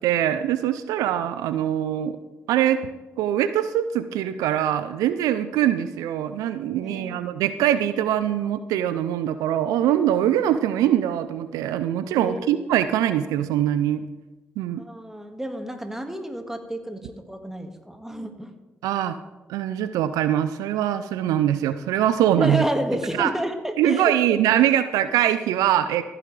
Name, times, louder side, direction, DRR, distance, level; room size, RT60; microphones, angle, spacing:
voice 1, 0.0-2.2 2.5-2.8 3.2-14.0 14.6-14.8 18.8-19.2 19.5-22.6 23.2-23.3 23.8-26.0, right 11 dB, 80° right, 12 dB, 0.4 m, -23 dB
voice 2, 6.8-7.2 12.1-12.5 14.8-18.5 22.4-24.4, right 1 dB, 5° right, 5 dB, 1.8 m, -30 dB
15.0 x 8.7 x 3.3 m, 1.1 s
hypercardioid pair, 45°, 6 cm